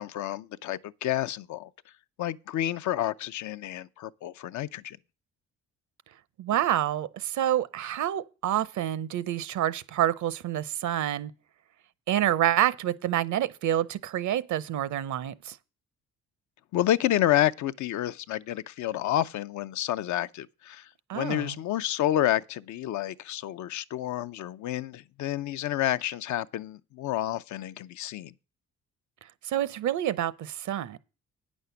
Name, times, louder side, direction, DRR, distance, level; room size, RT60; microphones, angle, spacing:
voice 1, 0.0-1.7 2.2-5.0 16.7-20.9 21.1-28.3, left 13 dB, 70° left, 0.5 m, -29 dB
voice 2, 6.4-11.3 12.1-15.6 21.1-21.6 29.5-31.0, right 12 dB, 70° right, 0.8 m, -28 dB
9.0 x 6.3 x 6.9 m
cardioid pair, 90°, 30 cm